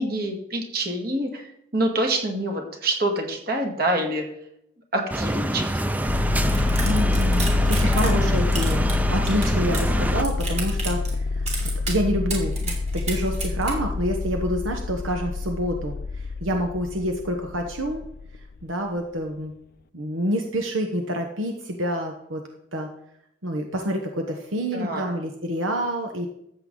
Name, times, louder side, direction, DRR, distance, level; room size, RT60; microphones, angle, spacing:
voice 1, 0.0-4.2 4.9-5.7 24.7-25.1, right 1 dB, 50° right, 2 dB, 2.1 m, -26 dB
sound 1, 5.1-10.2, right 1 dB, 10° right, 0.4 m, -26 dB
sound 2, 6.0-18.7, left 3 dB, 50° left, 0.4 m, -26 dB
sound 3, 6.5-8.2 8.5-9.9 10.2-11.1 11.5-12.0 12.3-13.7, right 4 dB, 35° right, 2.7 m, -32 dB
voice 2, 6.8-18.0 18.6-19.5 19.9-22.4 22.7-22.9 23.4-26.3, equal, 80° right, 3 dB, 1.2 m, -27 dB
13.5 x 7.9 x 3.9 m, 0.75 s
head